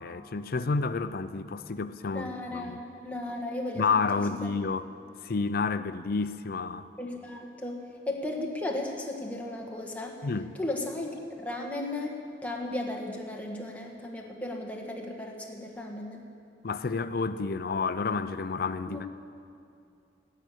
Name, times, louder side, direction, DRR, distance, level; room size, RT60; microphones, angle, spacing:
voice 1, 0.0-2.8 3.8-4.9 5.2-6.9 10.2-10.5 16.6-19.1, left 4 dB, 55° left, 12 dB, 0.5 m, -30 dB
voice 2, 2.1-4.0 7.0-10.2 10.6-16.2 18.9-19.1, left 1 dB, 10° left, -1 dB, 1.6 m, -35 dB
17.0 x 6.6 x 8.6 m, 2.5 s
head